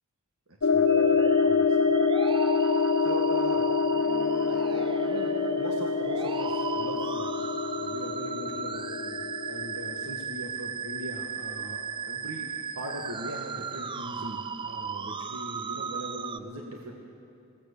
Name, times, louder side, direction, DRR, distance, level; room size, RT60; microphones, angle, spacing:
voice 1, 0.5-1.8 3.0-3.7 4.4-7.5 7.8-9.2 9.5-16.9, equal, 85° right, 0 dB, 1.9 m, -40 dB
sound 1, 0.6-10.1, left 5 dB, 70° left, 0.9 m, -26 dB
sound 2, 0.9-16.4, right 6 dB, 20° right, 0.4 m, -36 dB
sound 3, 3.8-9.9, equal, 10° left, 4.3 m, -46 dB
23.0 x 17.0 x 6.9 m, 2.6 s
head